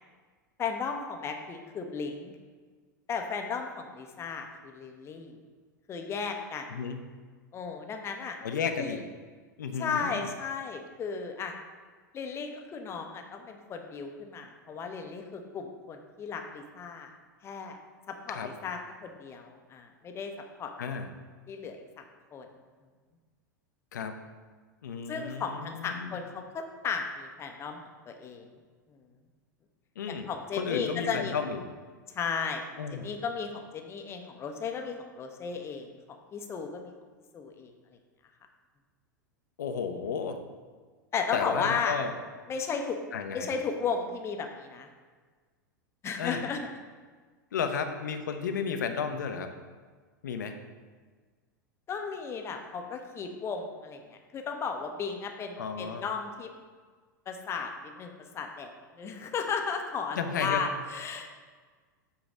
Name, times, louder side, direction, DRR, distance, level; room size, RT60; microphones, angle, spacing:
voice 1, 0.6-2.3 3.1-5.4 5.9-6.7 7.5-8.4 8.8-9.0 9.8-11.5 12.1-17.1 17.4-17.8 18.1-20.3 20.6-20.7 21.5-22.0 22.3-22.5 25.1-28.5 28.9-29.0 30.1-31.3 32.1-32.6 32.9-36.9 37.3-37.7 41.1-42.0 42.5-43.0 43.3-44.9 46.0-46.6 51.9-56.5 57.3-61.4, left 5 dB, 25° left, 4 dB, 0.7 m, -35 dB
voice 2, 8.4-9.0 9.6-10.3 18.3-18.5 20.8-21.1 23.9-24.2 24.8-26.2 30.0-30.3 30.5-31.6 32.8-33.1 39.6-40.4 41.3-42.1 43.1-43.5 46.2-46.4 47.5-49.5 50.2-50.6 55.6-56.0 60.2-60.7, left 6 dB, 65° left, 6 dB, 0.6 m, -33 dB
8.1 x 3.0 x 4.9 m, 1.5 s
figure-of-eight pair, 90°, 11 cm